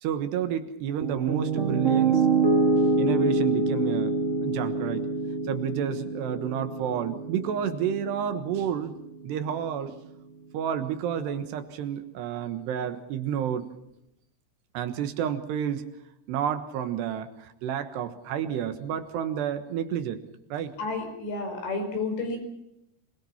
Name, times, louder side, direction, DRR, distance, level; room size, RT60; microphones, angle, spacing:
voice 1, 0.0-2.2 3.0-4.1 4.4-5.1 5.5-8.9 9.2-10.0 10.5-13.7 14.8-15.9 16.3-20.2 20.5-20.7, right 9 dB, 75° right, 9 dB, 3.4 m, -30 dB
Piano, 1.0-9.1, right 3 dB, 25° right, 1.9 m, -26 dB
voice 2, 20.8-22.4, left 3 dB, 80° left, 4 dB, 7.2 m, -31 dB
26.5 x 20.5 x 5.8 m, 0.82 s
omnidirectional pair, 4.9 m